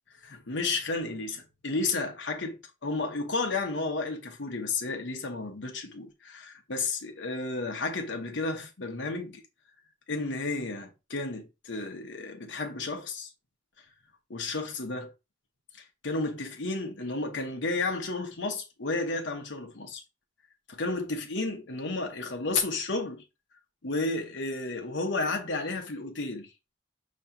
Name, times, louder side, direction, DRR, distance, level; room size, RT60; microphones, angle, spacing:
voice 1, 0.2-9.4 10.1-13.3 14.3-15.1 16.0-20.0 20.7-23.2 23.8-26.5, left 3 dB, 70° left, 1.0 m, -32 dB
5.8 x 3.2 x 2.7 m
head